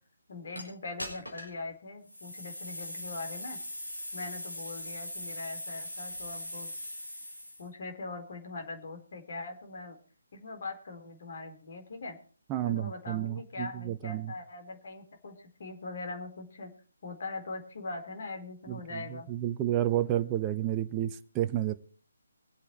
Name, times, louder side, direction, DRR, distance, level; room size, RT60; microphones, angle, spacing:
voice 1, 0.3-3.6 4.1-6.7 7.6-10.0 10.3-12.2 12.6-16.7 17.0-19.3, left 3 dB, 50° left, 4.2 m, -41 dB
sound 1, 0.6-0.7 1.0-1.6 2.1-7.7, left 1 dB, 90° left, 6.8 m, -40 dB
voice 2, 12.5-14.3 18.7-19.0 19.3-21.7, right 12 dB, 20° right, 0.9 m, -30 dB
24.5 x 8.2 x 4.5 m
figure-of-eight pair, 145°, 0 cm